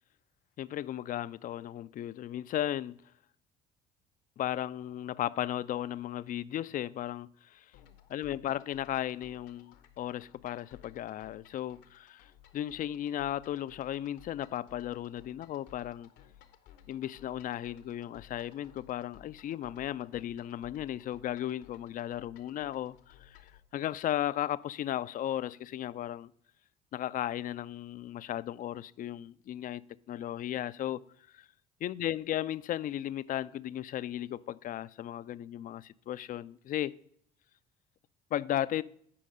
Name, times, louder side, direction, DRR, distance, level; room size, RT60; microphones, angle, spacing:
voice 1, 0.6-3.0 4.4-7.7 8.1-12.3 12.5-16.1 16.9-23.4 23.7-26.3 26.9-29.8 30.1-31.0 31.3-31.5 31.8-37.0 38.3-38.8, left 12 dB, 45° left, 0.4 m, -35 dB
sound 1, 7.7-23.6, left 10 dB, 75° left, 0.9 m, -58 dB
8.5 x 5.3 x 5.0 m
hypercardioid pair, 60°, 19 cm